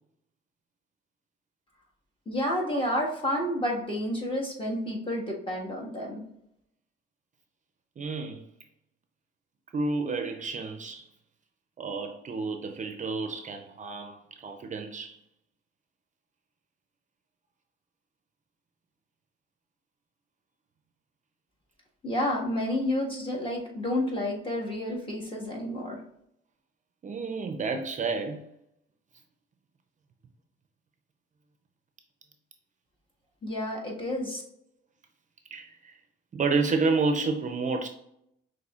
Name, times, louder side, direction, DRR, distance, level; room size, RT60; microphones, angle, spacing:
voice 1, 2.2-6.2 22.0-26.0 33.4-34.4, left 1 dB, 25° left, 1.5 m, -30 dB
voice 2, 8.0-8.5 9.7-11.0 11.8-15.2 23.1-23.4 27.0-28.4 35.5-36.0 36.3-37.9, right 4 dB, 40° right, 0.5 m, -30 dB
5.9 x 3.1 x 2.4 m
cardioid pair, 90°, 20 cm